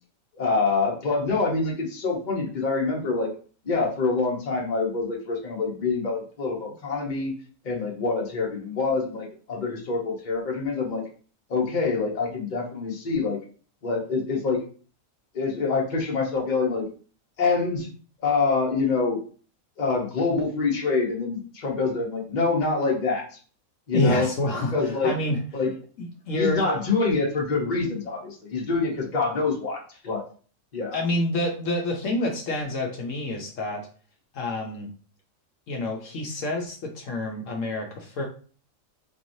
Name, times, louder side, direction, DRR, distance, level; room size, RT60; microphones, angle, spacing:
voice 1, 0.4-3.3 3.6-7.4 7.6-11.0 11.5-13.4 13.8-14.6 15.3-16.9 17.4-17.9 18.2-19.2 19.8-23.4 23.9-24.3 24.7-25.1 25.5-25.7 26.3-30.2 30.7-30.9, left 4 dB, 35° left, -1 dB, 1.0 m, -26 dB
voice 2, 23.9-25.4 26.0-26.6 30.9-33.8 34.3-34.9 35.7-38.2, left 1 dB, 70° left, 0 dB, 1.1 m, -28 dB
4.3 x 3.0 x 2.6 m, 0.41 s
omnidirectional pair, 1.4 m